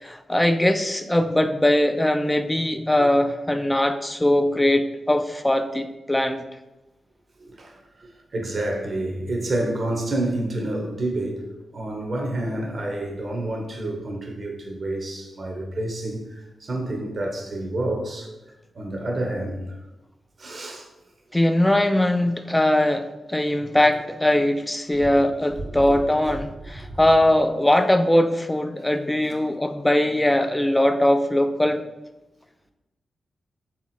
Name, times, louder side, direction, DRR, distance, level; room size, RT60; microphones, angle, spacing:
voice 1, 0.0-6.4 21.3-31.8, left 1 dB, 15° left, 8 dB, 0.3 m, -21 dB
voice 2, 7.4-11.4 11.7-18.3 18.7-19.8 20.4-20.9 25.8-26.0 26.8-27.0, right 1 dB, 50° right, 1 dB, 0.7 m, -29 dB
3.5 x 2.9 x 4.2 m, 0.99 s
cardioid pair, 60°, 0 cm